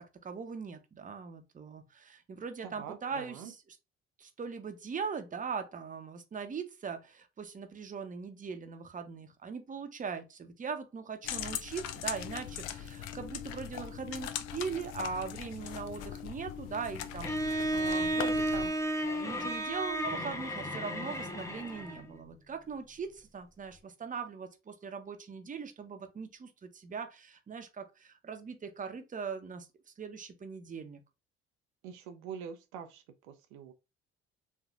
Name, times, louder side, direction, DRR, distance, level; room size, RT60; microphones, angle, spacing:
voice 1, 0.0-3.6 4.2-18.8 19.0-29.7 30.0-31.0, right 5 dB, 25° right, 0.7 m, -40 dB
voice 2, 2.6-3.5 31.8-33.7, right 7 dB, 75° right, 0.5 m, -45 dB
sound 1, 11.2-18.7, left 10 dB, 60° left, 0.5 m, -40 dB
Bowed string instrument, 17.2-22.1, right 1 dB, 10° left, 0.8 m, -33 dB
3.1 x 2.5 x 2.4 m
hypercardioid pair, 55°, 29 cm